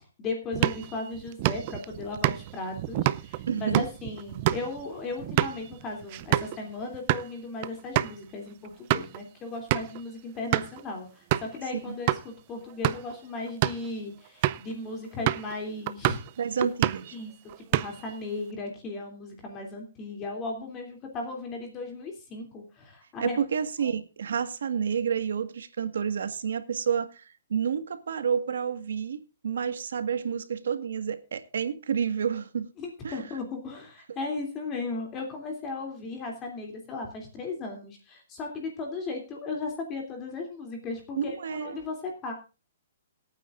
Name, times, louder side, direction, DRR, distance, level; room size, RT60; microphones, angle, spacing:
voice 1, 0.2-16.2 17.1-17.3 17.7-23.4 23.8-23.9 32.8-42.3, left 3 dB, 20° left, 2.9 m, -36 dB
sound 1, 0.5-6.6 6.9-7.3 7.6-7.7 7.9-8.2 8.6-9.2 9.7-10.0 10.5-10.8 11.3-11.6 12.1-12.2 12.7-13.1 13.5-13.9 14.4-14.7 15.3-15.5 15.9-16.3 16.6-17.1 17.5-18.1, right 15 dB, 35° right, 0.5 m, -28 dB
voice 2, 3.5-3.8 11.8-11.9 16.4-17.1 23.2-32.7 33.0-33.2 41.1-41.8, right 7 dB, 75° right, 1.6 m, -29 dB
22.5 x 9.1 x 2.5 m
hypercardioid pair, 165°, 0 cm